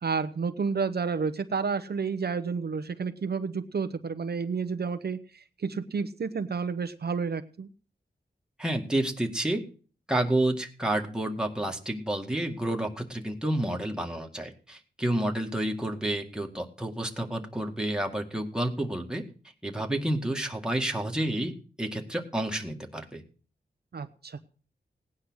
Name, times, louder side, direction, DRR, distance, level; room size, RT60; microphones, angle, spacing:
voice 1, 0.0-7.7 23.9-24.4, right 5 dB, 60° right, 9 dB, 0.9 m, -30 dB
voice 2, 8.6-9.6 10.1-19.2 19.6-21.5 21.8-23.2, right 1 dB, 5° right, 2 dB, 2.0 m, -30 dB
17.5 x 9.7 x 6.3 m, 0.40 s
wide cardioid pair, 105°, 18 cm